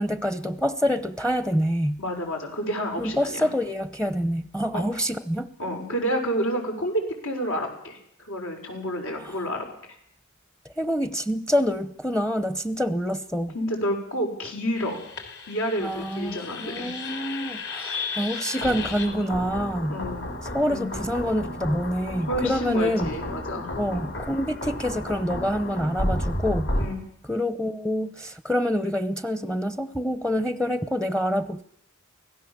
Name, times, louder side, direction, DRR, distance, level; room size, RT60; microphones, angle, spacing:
voice 1, 0.0-2.0 3.0-5.5 9.2-9.4 10.6-13.5 15.8-20.0 20.4-23.1 23.7-26.7 27.2-31.6, equal, 5° left, 12 dB, 0.8 m, -26 dB
voice 2, 2.0-3.5 4.7-4.8 5.6-9.7 13.5-15.0 15.5-16.9 19.9-20.2 20.7-20.9 22.2-24.1 26.8-27.0, equal, 75° left, 2 dB, 6.0 m, -29 dB
sound 1, 14.8-26.9, left 1 dB, 60° left, 3.9 m, -32 dB
24.5 x 17.0 x 7.4 m, 0.68 s
head